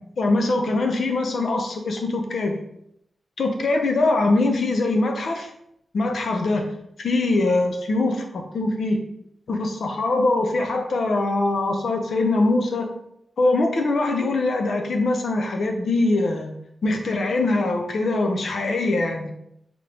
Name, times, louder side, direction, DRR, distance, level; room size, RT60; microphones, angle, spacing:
voice 1, 0.2-2.6 3.4-5.5 5.9-6.6 7.0-9.0 9.5-12.9 13.4-16.5 16.8-19.3, left 2 dB, 70° left, 3 dB, 0.7 m, -22 dB
3.8 x 3.0 x 3.4 m, 0.75 s
wide cardioid pair, 130°, 0 cm